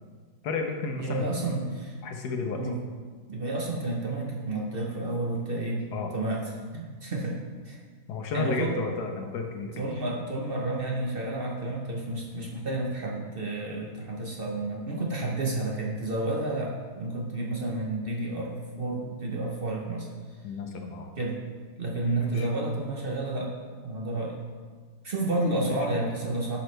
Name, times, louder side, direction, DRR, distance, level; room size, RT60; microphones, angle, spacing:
voice 1, 0.4-1.3 2.0-2.6 5.9-6.1 8.1-9.7 20.4-21.1 22.2-22.5 25.6-25.8, left 4 dB, 70° left, 3 dB, 1.3 m, -32 dB
voice 2, 1.0-2.0 2.6-2.8 3.3-5.9 6.1-7.4 7.6-7.8 8.3-8.8 9.8-20.1 21.2-21.4 21.8-23.5 23.8-24.4 25.0-26.6, right 2 dB, 45° right, -2 dB, 0.8 m, -30 dB
10.5 x 5.7 x 3.3 m, 1.5 s
omnidirectional pair, 1.9 m